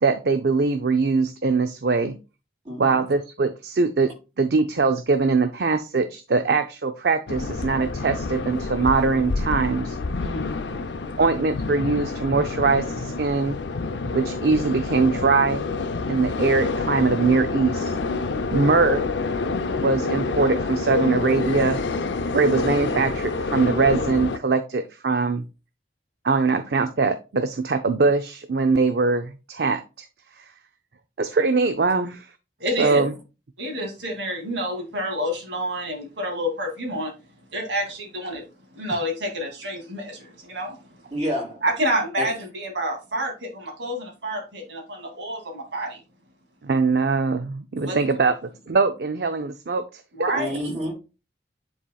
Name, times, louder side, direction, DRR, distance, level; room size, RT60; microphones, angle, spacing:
voice 1, 0.0-2.2 2.8-10.0 11.2-13.6 14.1-15.7 16.1-17.9 18.5-19.1 19.8-21.8 22.3-25.4 26.2-30.1 30.4-30.5 31.2-32.3 32.8-33.1 46.6-48.3 48.7-50.0, right 4 dB, 65° right, 0.5 m, -22 dB
voice 2, 2.6-3.0 32.8-32.9 41.1-41.6 42.2-42.3 47.8-48.0 50.3-50.9, equal, 40° right, 3.0 m, -29 dB
sound 1, 7.3-24.4, left 3 dB, 85° left, 0.6 m, -27 dB
voice 3, 10.2-11.2 32.6-33.0 33.6-37.1 37.5-38.4 38.7-41.0 41.6-46.0 47.9-48.0 50.1-50.6, equal, 85° right, 2.6 m, -29 dB
9.9 x 4.4 x 2.3 m
head